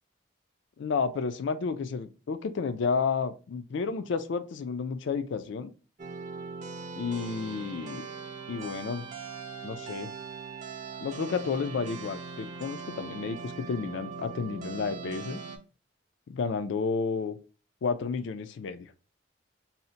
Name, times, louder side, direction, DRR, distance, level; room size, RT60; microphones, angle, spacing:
voice 1, 0.8-5.7 7.0-8.1 8.5-9.0 9.6-10.1 11.0-15.4 16.3-17.4 17.8-18.9, left 5 dB, 75° left, 9 dB, 0.4 m, -31 dB
sound 1, 6.0-15.6, right 5 dB, 40° right, 0.5 m, -40 dB
2.7 x 2.1 x 3.9 m, 0.34 s
head